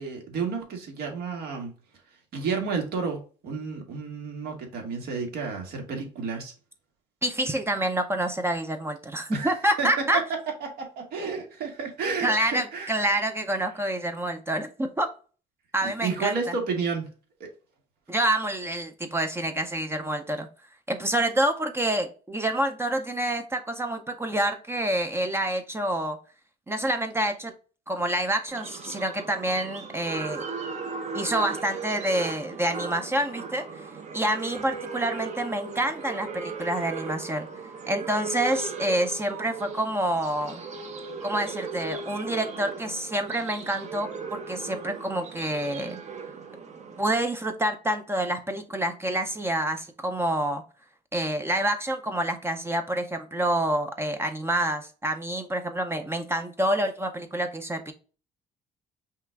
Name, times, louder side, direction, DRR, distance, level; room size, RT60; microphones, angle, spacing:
voice 1, 0.0-1.7 2.3-6.5 9.3-9.9 10.6-12.9 16.0-17.0 17.4-17.5, right 5 dB, 70° right, 1 dB, 1.7 m, -31 dB
voice 2, 7.2-10.2 12.2-15.1 15.7-16.5 18.1-20.5 20.9-26.2 26.7-27.5 27.9-30.4 31.1-33.8 34.1-37.5 37.9-40.6 41.2-46.0 47.0-50.6 51.1-57.9, right 1 dB, 15° right, 6 dB, 0.5 m, -27 dB
sound 1, 28.5-47.1, right 4 dB, 40° right, 0.9 m, -37 dB
5.6 x 2.4 x 3.4 m, 0.37 s
cardioid pair, 110°, 17 cm